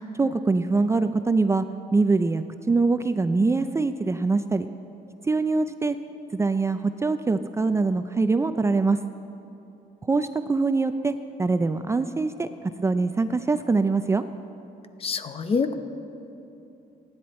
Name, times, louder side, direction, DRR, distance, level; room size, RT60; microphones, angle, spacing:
voice 1, 0.2-1.6 1.9-4.7 5.2-6.0 6.3-9.0 10.1-12.5 12.8-14.2, right 3 dB, 15° right, 9 dB, 0.4 m, -23 dB
voice 2, 15.0-15.7, left 5 dB, 35° left, 9 dB, 0.8 m, -26 dB
26.0 x 10.5 x 4.3 m, 3.0 s
cardioid pair, 125°, 16 cm